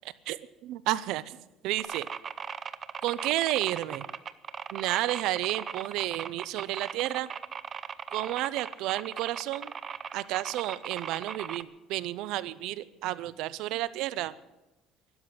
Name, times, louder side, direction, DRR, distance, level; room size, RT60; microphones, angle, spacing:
voice 1, 0.3-1.4 1.6-2.1 3.0-4.1 4.7-7.3 8.1-9.7 10.1-14.3, right 15 dB, 70° right, 17 dB, 0.6 m, -31 dB
sound 1, 1.8-11.6, right 7 dB, 30° right, 0.7 m, -38 dB
12.5 x 12.0 x 9.6 m, 1.0 s
cardioid pair, 145°, 0 cm